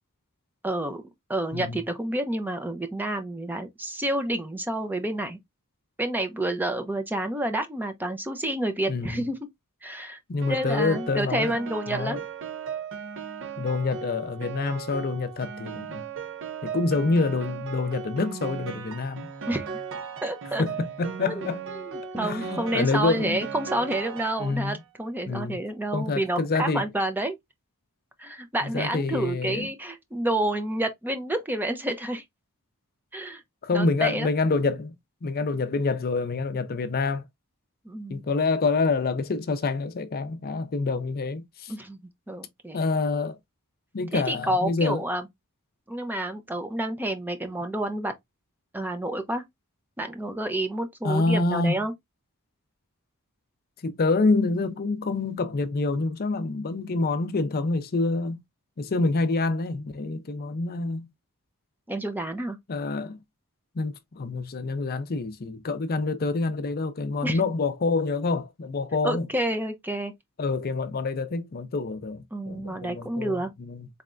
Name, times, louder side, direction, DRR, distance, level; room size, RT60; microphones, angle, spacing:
voice 1, 0.6-1.0 1.3-5.4 6.0-9.4 9.8-10.2 10.5-12.2 19.5-19.7 20.2-20.6 21.2-21.5 21.7-27.4 28.2-32.2 33.1-33.4 33.7-34.3 37.8-38.2 41.7-42.0 42.3-42.8 44.1-45.2 45.9-48.1 48.7-49.4 50.0-51.9 61.9-62.6 67.2-67.4 69.0-70.1 72.3-73.5, right 1 dB, 10° right, 0.6 m, -29 dB
voice 2, 8.9-9.3 10.3-11.5 11.9-12.2 13.6-16.1 16.6-19.3 20.6-21.6 22.2-23.4 24.4-24.8 25.3-25.6 25.9-26.9 28.7-29.7 33.6-35.0 35.2-37.2 38.1-41.7 42.7-43.4 43.9-45.0 51.0-51.8 53.8-58.4 58.8-61.1 62.7-63.2 63.8-69.3 70.4-73.9, left 3 dB, 45° left, 0.5 m, -27 dB
Piano, 10.4-24.8, right 6 dB, 60° right, 0.7 m, -37 dB
4.1 x 3.3 x 2.5 m
head